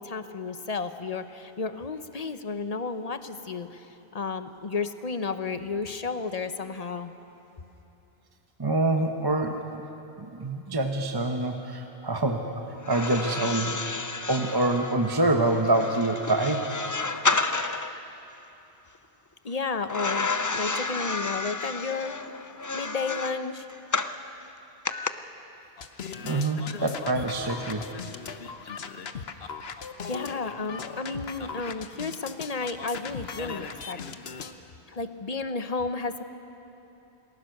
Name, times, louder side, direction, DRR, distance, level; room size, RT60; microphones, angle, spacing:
voice 1, 0.0-7.1 19.4-22.1 22.7-23.7 30.1-34.0 34.9-36.2, left 4 dB, 40° left, 10 dB, 0.9 m, -32 dB
voice 2, 8.6-9.9 10.2-13.8 14.3-16.7 17.5-17.7 26.2-27.9, right 2 dB, 25° right, 4 dB, 1.0 m, -26 dB
sound 1, 12.8-18.0 19.9-24.2 24.9-25.1, left 3 dB, 25° left, 0.5 m, -31 dB
sound 2, 25.8-34.5, left 6 dB, 70° left, 1.2 m, -38 dB
28.5 x 19.5 x 6.6 m, 3.0 s
omnidirectional pair, 1.1 m